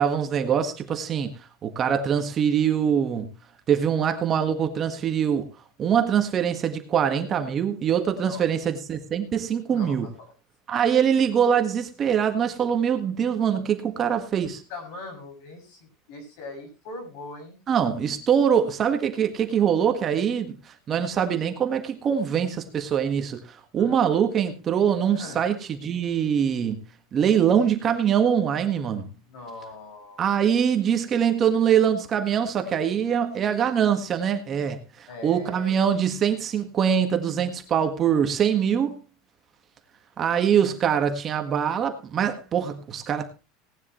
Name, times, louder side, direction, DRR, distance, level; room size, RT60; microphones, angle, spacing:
voice 1, 0.0-1.4 1.6-3.3 3.7-5.5 5.8-10.1 10.7-14.6 17.7-26.8 27.1-29.1 30.2-39.0 40.2-43.3, right 8 dB, 25° right, 1.6 m, -23 dB
voice 2, 8.2-8.5 9.7-10.3 13.6-14.2 14.4-17.6 23.8-24.0 25.1-25.4 29.3-30.3 32.7-33.1 35.1-35.8, left 3 dB, 60° left, 6.9 m, -41 dB
18.0 x 11.0 x 3.1 m
supercardioid pair, 160°, 0 cm